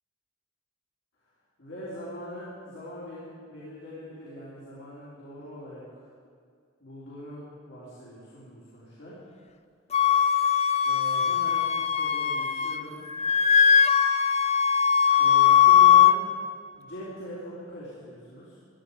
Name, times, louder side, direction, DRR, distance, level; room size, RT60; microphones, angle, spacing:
voice 1, 1.6-6.1 6.8-9.1 10.8-13.0 15.2-16.3 16.7-18.6, equal, 70° left, -9 dB, 3.5 m, -42 dB
Wind instrument woodwind instrument, 9.9-12.8 13.1-16.2, left 8 dB, 35° left, 0.5 m, -20 dB
16.5 x 10.5 x 5.1 m, 2.1 s
head